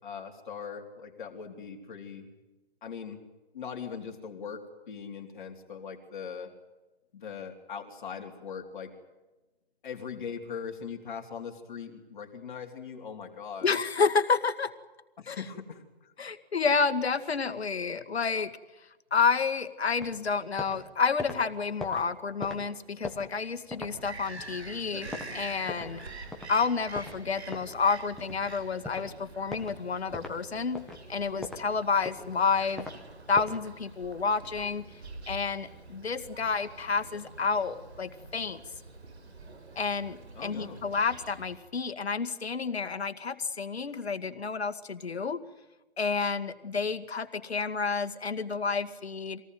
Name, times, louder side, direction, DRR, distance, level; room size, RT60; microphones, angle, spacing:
voice 1, 0.0-2.3 2.8-3.2 3.5-6.5 7.1-8.9 9.8-13.7 15.2-16.1 40.4-40.8, left 6 dB, 50° left, 2 dB, 3.9 m, -40 dB
voice 2, 13.6-14.7 15.3-15.4 16.2-18.5 19.1-26.0 26.5-30.8 31.1-32.9 33.3-34.8 35.3-38.6 39.8-45.4 46.0-49.4, left 5 dB, 75° left, 9 dB, 2.2 m, -30 dB
sound 1, 20.0-20.8 21.1-26.0 26.3-26.5 26.9-28.5 28.8-29.1 29.5-29.8 30.1-30.4 30.7-31.7 32.0-33.0 33.3-33.7, left 2 dB, ahead, 1.6 m, -41 dB
Bird vocalization bird call bird song, 23.9-41.6, right 3 dB, 80° right, 5.6 m, -46 dB
26.0 x 18.5 x 9.5 m, 1.1 s
hypercardioid pair, 155°, 32 cm